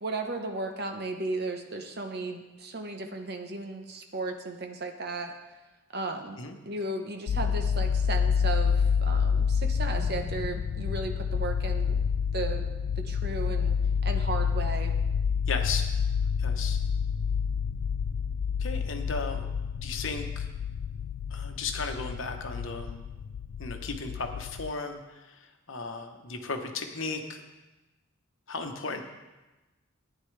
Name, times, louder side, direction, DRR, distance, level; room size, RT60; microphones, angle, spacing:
voice 1, 0.0-5.3 5.9-6.4 6.6-12.0 12.3-12.7 13.0-13.8 14.0-14.9, right 2 dB, 50° right, 5 dB, 1.0 m, -35 dB
sound 1, 7.3-24.7, left 6 dB, 85° left, 0.3 m, -28 dB
sound 2, 9.9-13.5, left 1 dB, 5° left, 1.7 m, -49 dB
voice 2, 15.5-15.9 16.4-16.8 18.6-19.5 19.8-20.5 21.3-23.0 23.6-27.4 28.5-29.0, left 4 dB, 70° left, 5 dB, 1.0 m, -35 dB
15.0 x 9.7 x 3.3 m, 1.1 s
head